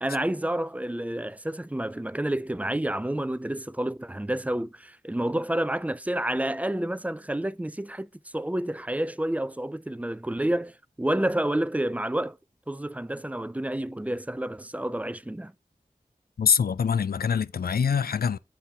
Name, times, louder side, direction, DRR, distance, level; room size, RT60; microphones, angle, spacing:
voice 1, 0.0-12.4 12.7-15.5, right 1 dB, 10° right, 0.3 m, -29 dB
voice 2, 16.4-18.4, left 6 dB, 85° left, 0.4 m, -24 dB
8.0 x 4.2 x 4.2 m
wide cardioid pair, 65°, 15 cm